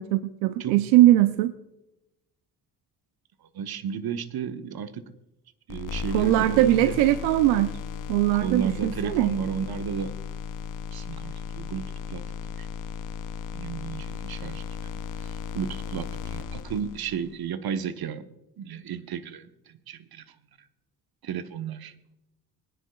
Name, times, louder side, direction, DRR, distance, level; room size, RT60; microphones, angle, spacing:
voice 1, 0.0-1.5 6.1-7.7 8.1-9.3, right 15 dB, 75° right, 13 dB, 0.6 m, -20 dB
voice 2, 3.5-5.0 5.7-7.0 8.4-10.1 10.9-12.2 12.6-12.7 13.5-18.2 18.6-19.4 19.7-20.2 21.2-21.9, right 7 dB, 55° right, 11 dB, 1.1 m, -33 dB
sound 1, 5.7-17.4, left 6 dB, 45° left, 0.9 m, -36 dB
22.5 x 10.0 x 2.3 m, 0.90 s
hypercardioid pair, 45°, 45 cm